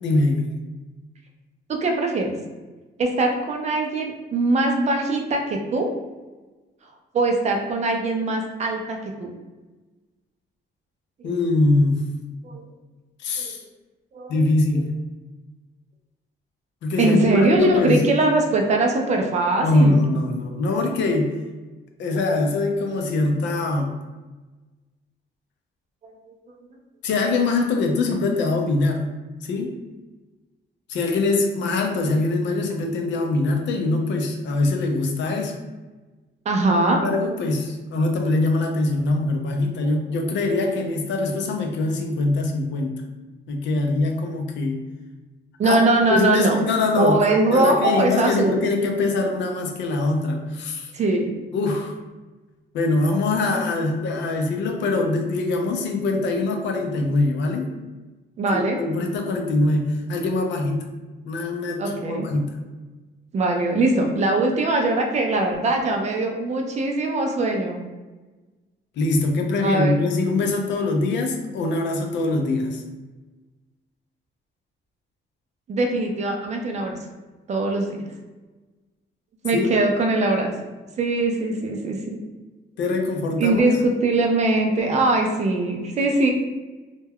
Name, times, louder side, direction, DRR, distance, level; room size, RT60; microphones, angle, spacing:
voice 1, 0.0-0.5 11.2-12.0 13.2-13.6 14.3-14.9 16.8-18.0 19.6-21.4 22.0-23.9 27.0-29.1 29.4-29.8 30.9-35.5 37.0-43.0 43.5-44.8 45.6-45.8 46.1-47.2 47.5-50.9 51.5-52.0 52.7-57.7 58.5-60.9 61.3-62.6 69.0-72.8 79.5-79.7 82.8-83.6, left 2 dB, 70° left, 3 dB, 0.5 m, -23 dB
voice 2, 1.7-2.4 3.0-5.9 7.1-9.3 11.2-11.3 12.4-12.6 13.4-13.5 14.1-14.4 14.7-14.8 17.0-20.0 26.0-26.3 36.5-37.0 39.8-40.0 45.6-46.6 47.0-48.6 50.9-51.4 58.4-58.8 61.8-62.3 63.3-67.8 69.6-70.0 75.7-77.0 77.5-78.0 79.4-80.5 81.0-82.2 83.4-86.3, right 2 dB, 35° right, 2 dB, 0.4 m, -21 dB
2.2 x 2.2 x 3.4 m, 1.2 s
cardioid pair, 150°, 19 cm